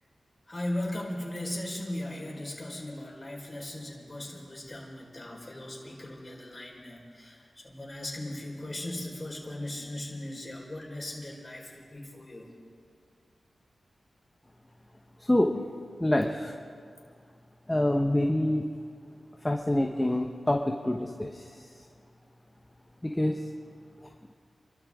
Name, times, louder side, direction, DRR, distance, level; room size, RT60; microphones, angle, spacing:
voice 1, 0.5-12.5, left 1 dB, 30° left, -1 dB, 4.5 m, -38 dB
voice 2, 15.2-15.5 16.0-16.5 17.7-18.6 19.4-21.7 23.0-23.4, left 1 dB, 15° left, 2 dB, 1.1 m, -26 dB
28.0 x 13.0 x 3.7 m, 2.2 s
cardioid pair, 50°, 0 cm